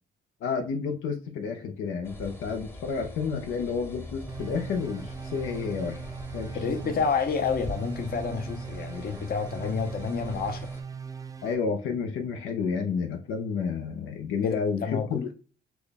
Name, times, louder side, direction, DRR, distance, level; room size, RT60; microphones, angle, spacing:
voice 1, 0.4-6.0 6.3-6.6 6.8-6.9 9.6-9.7 11.4-15.3, left 5 dB, 85° left, 0.8 m, -30 dB
sound 1, 2.0-10.8, left 2 dB, 10° left, 0.9 m, -43 dB
sound 2, 4.3-11.5, right 6 dB, 15° right, 0.4 m, -39 dB
voice 2, 6.5-10.7 14.4-15.2, left 5 dB, 50° left, 0.9 m, -29 dB
6.1 x 2.4 x 3.5 m
cardioid pair, 90°, 20 cm